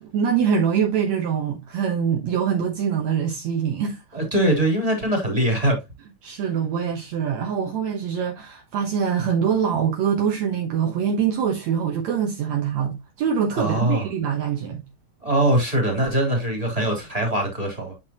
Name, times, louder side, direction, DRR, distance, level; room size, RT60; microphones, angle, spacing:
voice 1, 0.0-4.2 6.2-14.8, right 7 dB, 65° right, 2.3 m, -24 dB
voice 2, 4.1-5.8 13.6-14.1 15.2-17.9, right 1 dB, 10° right, 3.3 m, -22 dB
8.7 x 5.9 x 3.0 m
omnidirectional pair, 3.6 m